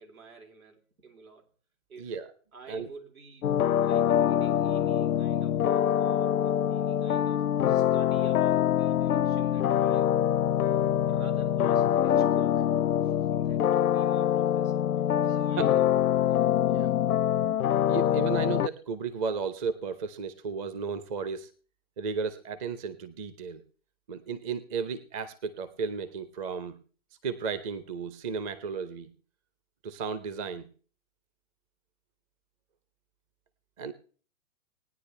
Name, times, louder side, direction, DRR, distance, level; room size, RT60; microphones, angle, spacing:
voice 1, 0.0-1.5 1.9-2.2 2.5-3.5 3.8-10.3 11.1-12.7 13.0-14.9 15.3-16.0, right 4 dB, 70° right, 3 dB, 3.5 m, -50 dB
voice 2, 2.0-2.3 2.7-2.9 15.3-15.8 16.7-16.9 17.9-21.5 22.0-23.6 24.1-26.8 27.2-29.1 29.8-30.7 33.8-33.9, right 5 dB, 25° right, 12 dB, 0.7 m, -34 dB
sound 1, 3.4-18.7, left 10 dB, 85° left, 0.5 m, -25 dB
19.0 x 9.8 x 3.3 m, 0.41 s
hypercardioid pair, 130°, 43 cm